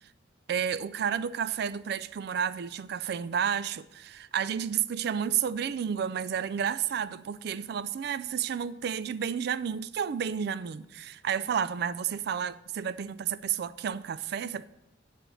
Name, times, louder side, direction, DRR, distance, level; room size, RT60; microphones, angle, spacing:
voice 1, 0.5-14.7, right 8 dB, 60° right, 0.3 m, -31 dB
8.4 x 5.0 x 7.5 m
head